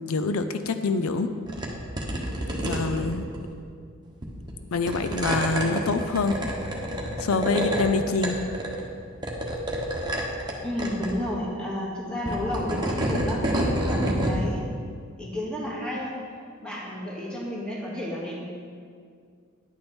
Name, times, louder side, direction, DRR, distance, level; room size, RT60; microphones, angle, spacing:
voice 1, 0.1-1.3 2.6-3.2 4.7-6.4 7.2-8.4, left 3 dB, 90° left, 9 dB, 0.5 m, -25 dB
sound 1, 1.5-1.7 2.0-3.4 4.2-4.5 4.9-7.9 8.2-8.9 9.2-10.5 10.8-11.1 12.1-14.4, right 1 dB, 20° right, 1.3 m, -28 dB
voice 2, 10.6-14.6 15.2-16.1 16.6-18.4, left 1 dB, 5° left, -5 dB, 2.1 m, -31 dB
10.5 x 8.7 x 4.4 m, 2.1 s
head